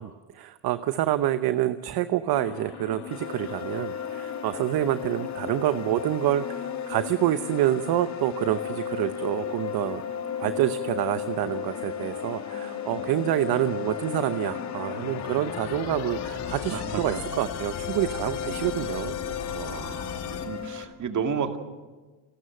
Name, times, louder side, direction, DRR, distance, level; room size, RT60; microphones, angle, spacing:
voice 1, 0.0-10.0 10.4-19.4, right 13 dB, 65° right, 12 dB, 0.9 m, -27 dB
sound 1, 2.3-20.4, left 8 dB, 85° left, 2.4 m, -38 dB
sound 2, 3.1-20.8, left 8 dB, 45° left, 2.6 m, -35 dB
voice 2, 16.7-17.2 19.5-21.6, right 6 dB, 45° right, 5 dB, 2.4 m, -32 dB
27.5 x 13.0 x 7.8 m, 1.3 s
cardioid pair, 95°, 40 cm